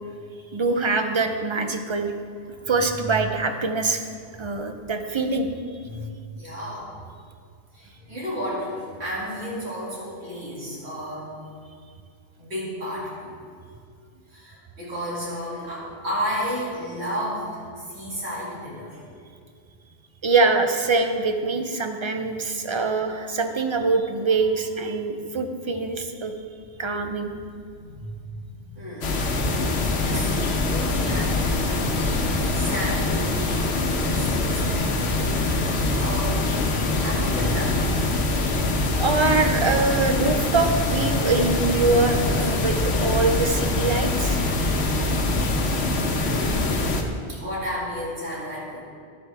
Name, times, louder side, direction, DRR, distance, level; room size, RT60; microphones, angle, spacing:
voice 1, 0.5-2.1 2.7-4.0 4.4-5.5 20.2-26.3 26.8-27.3 36.8-36.9 39.0-44.4, right 3 dB, 35° right, 6 dB, 0.5 m, -24 dB
voice 2, 5.9-6.9 7.7-11.4 12.4-13.4 14.3-19.0 22.7-22.8 25.0-25.3 27.7-29.5 30.0-30.3 30.7-35.6 35.9-36.5 37.0-37.9 46.1-46.8 47.3-48.8, equal, 70° right, -6 dB, 2.7 m, -33 dB
sound 1, 29.0-47.0, left 2 dB, 75° left, 1.2 m, -24 dB
12.5 x 7.7 x 3.4 m, 2.2 s
omnidirectional pair, 1.1 m